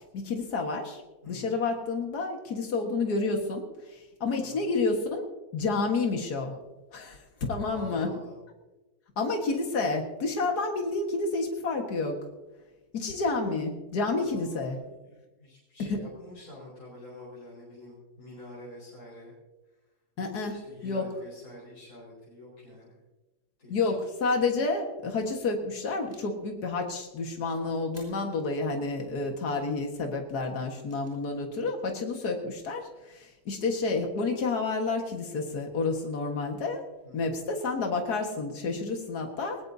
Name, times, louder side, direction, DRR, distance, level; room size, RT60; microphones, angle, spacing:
voice 1, 0.1-5.3 5.5-6.5 6.9-8.1 9.2-12.2 12.9-14.8 15.8-16.0 20.2-20.6 20.8-21.0 23.7-36.8 37.1-39.6, left 3 dB, 80° left, 2 dB, 2.2 m, -30 dB
voice 2, 1.2-1.5 3.8-4.0 4.4-4.7 7.7-8.4 14.2-14.8 15.0-19.3 20.5-23.0 23.6-23.9 37.0-37.4, left 1 dB, 60° left, -6 dB, 5.1 m, -47 dB
sound 1, 26.0-26.3 27.9-28.4 30.8-31.2, equal, 10° right, 5.9 m, -57 dB
20.0 x 19.5 x 2.7 m, 1.1 s
omnidirectional pair, 1.7 m